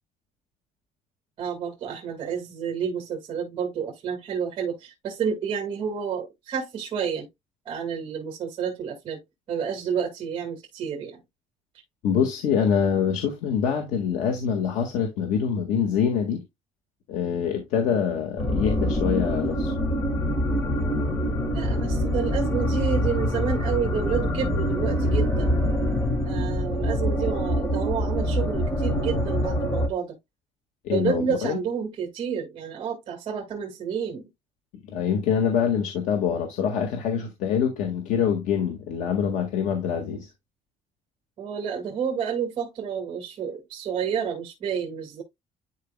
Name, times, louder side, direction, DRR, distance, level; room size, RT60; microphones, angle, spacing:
voice 1, 1.4-7.3 7.7-9.2 9.5-11.2 17.9-18.2 21.5-25.6 26.2-30.2 30.9-34.3 41.4-45.2, right 7 dB, 40° right, 2.2 m, -30 dB
voice 2, 12.0-16.4 17.1-19.7 30.8-31.6 34.9-40.3, left 7 dB, 90° left, 1.8 m, -25 dB
sound 1, 18.4-29.9, equal, 20° left, 1.5 m, -25 dB
11.5 x 4.6 x 2.2 m
cardioid pair, 180°, 13 cm